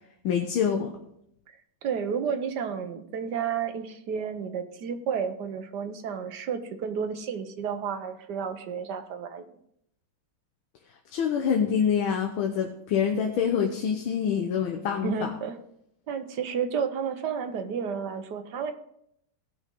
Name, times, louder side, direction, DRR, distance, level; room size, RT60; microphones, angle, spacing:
voice 1, 0.2-0.9 11.1-15.3, left 7 dB, 80° left, 3 dB, 1.7 m, -26 dB
voice 2, 1.5-9.5 15.0-15.6 16.1-18.7, right 6 dB, 60° right, 8 dB, 1.3 m, -31 dB
16.5 x 6.1 x 3.8 m, 0.74 s
omnidirectional pair, 2.2 m